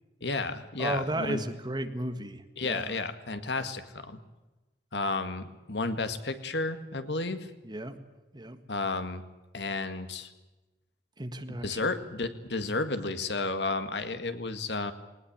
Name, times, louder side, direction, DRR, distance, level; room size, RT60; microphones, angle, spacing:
voice 1, 0.2-1.4 2.6-4.2 4.9-7.5 8.7-9.2 9.5-10.3 11.5-14.9, left 3 dB, 80° left, 9 dB, 1.9 m, -32 dB
voice 2, 0.8-2.9 3.6-3.7 7.6-8.0 8.3-8.6 11.2-11.8, right 1 dB, 25° right, 8 dB, 1.7 m, -34 dB
21.0 x 19.5 x 8.8 m, 1.1 s
head